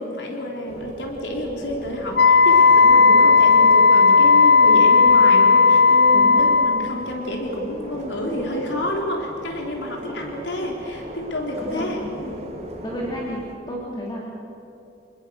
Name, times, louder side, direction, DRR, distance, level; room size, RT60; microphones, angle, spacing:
voice 1, 0.0-12.5, left 1 dB, 85° left, 0 dB, 3.7 m, -29 dB
sound 1, 0.7-13.5, right 1 dB, 35° right, 2.8 m, -39 dB
Wind instrument woodwind instrument, 2.1-6.9, left 4 dB, 60° left, 0.9 m, -14 dB
voice 2, 3.0-3.4 6.1-6.6 10.0-10.1 11.6-11.9 12.8-14.2, equal, 25° left, -4 dB, 3.0 m, -32 dB
27.5 x 21.0 x 6.5 m, 2.7 s
head